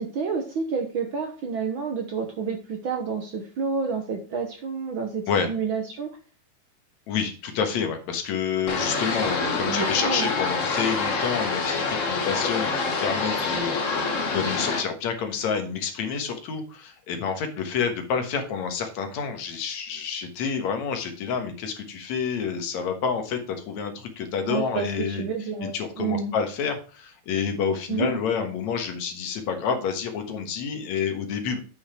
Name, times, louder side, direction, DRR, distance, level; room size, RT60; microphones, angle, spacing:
voice 1, 0.0-6.1 9.7-10.3 24.5-26.3 27.9-28.2, right 5 dB, 55° right, 4 dB, 1.5 m, -29 dB
voice 2, 7.1-25.2 25.7-31.6, left 6 dB, 75° left, 6 dB, 2.6 m, -28 dB
sound 1, 8.7-14.8, left 4 dB, 50° left, 0.9 m, -26 dB
8.6 x 5.6 x 4.4 m, 0.37 s
omnidirectional pair, 3.3 m